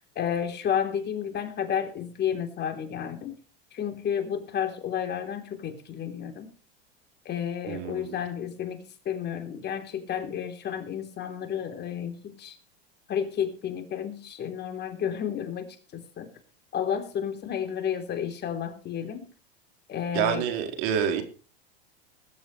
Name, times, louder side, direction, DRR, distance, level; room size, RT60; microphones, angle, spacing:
voice 1, 0.2-3.3 3.7-6.5 7.3-12.6 13.1-16.3 16.7-19.3 19.9-20.5, left 8 dB, 35° left, 6 dB, 3.5 m, -31 dB
voice 2, 7.7-8.2 20.1-21.2, right 8 dB, 60° right, 6 dB, 4.3 m, -27 dB
21.0 x 12.0 x 3.3 m, 0.38 s
hypercardioid pair, 110°, 30 cm